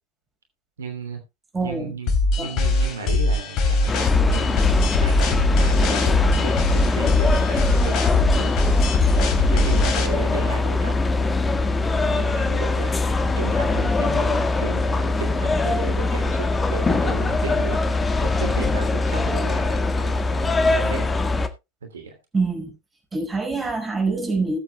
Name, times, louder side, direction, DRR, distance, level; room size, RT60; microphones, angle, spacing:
voice 1, 0.8-1.2 1.6-2.1 2.4-8.5 9.1-9.2 9.5-17.8 18.2-21.1 21.8-22.1, right 5 dB, 75° right, 2.9 m, -34 dB
voice 2, 1.5-1.9 2.4-2.5 22.3-22.7 23.1-24.6, right 3 dB, 15° right, 5.2 m, -25 dB
sound 1, 2.1-10.1, left 2 dB, 45° left, 3.1 m, -21 dB
sound 2, 3.9-21.5, left 3 dB, 15° left, 1.6 m, -22 dB
20.0 x 8.1 x 2.3 m
figure-of-eight pair, 85°, 0 cm